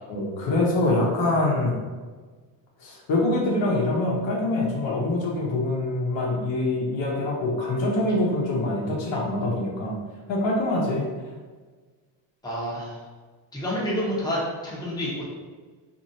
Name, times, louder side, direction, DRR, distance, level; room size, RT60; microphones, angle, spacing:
voice 1, 0.1-1.7 2.8-10.0 10.3-11.1, left 2 dB, 65° left, -2 dB, 0.8 m, -24 dB
voice 2, 12.4-13.0 13.5-15.3, equal, 10° left, -6 dB, 0.8 m, -28 dB
2.9 x 2.6 x 2.7 m, 1.4 s
cardioid pair, 105°, 49 cm